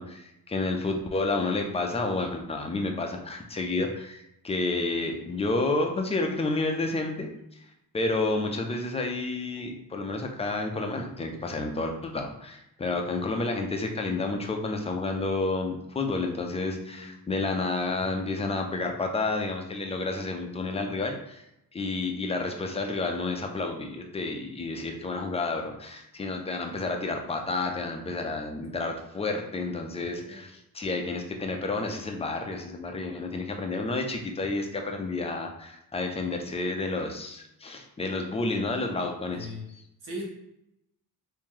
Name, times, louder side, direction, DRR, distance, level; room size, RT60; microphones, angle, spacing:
voice 1, 0.0-7.3 7.9-21.4 21.7-39.8, left 3 dB, 15° left, 3 dB, 0.3 m, -30 dB
voice 2, 16.9-17.2 18.0-18.1 30.2-30.4 39.3-39.7 40.0-40.2, equal, 75° right, -2 dB, 1.2 m, -39 dB
2.9 x 2.7 x 3.6 m, 0.81 s
cardioid pair, 150°, 38 cm